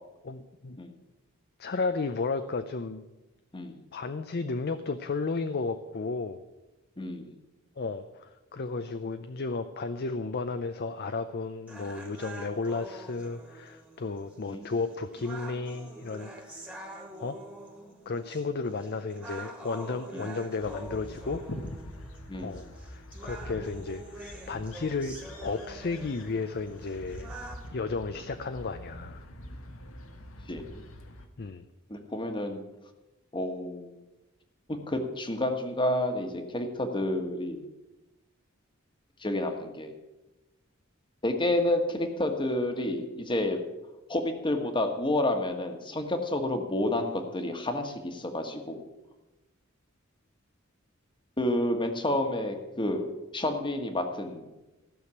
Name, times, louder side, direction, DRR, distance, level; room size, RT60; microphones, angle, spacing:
voice 1, 0.2-0.8 1.6-3.1 3.9-6.4 7.8-16.8 17.2-17.4 18.1-21.4 22.4-25.2 25.4-27.3 27.7-29.2 31.4-31.6, left 4 dB, 50° left, 9 dB, 0.6 m, -33 dB
voice 2, 7.0-7.3 14.5-14.7 20.1-20.2 22.3-22.7 30.5-30.8 31.9-32.6 33.3-34.0 34.9-37.6 39.2-39.9 41.2-43.6 44.1-48.8 51.4-53.0 53.3-54.5, left 1 dB, 25° left, 5 dB, 1.5 m, -30 dB
sound 1, 11.7-27.7, right 2 dB, 10° right, 1.9 m, -46 dB
sound 2, 20.6-31.3, left 1 dB, 80° left, 1.5 m, -44 dB
15.0 x 6.4 x 8.3 m, 1.0 s
head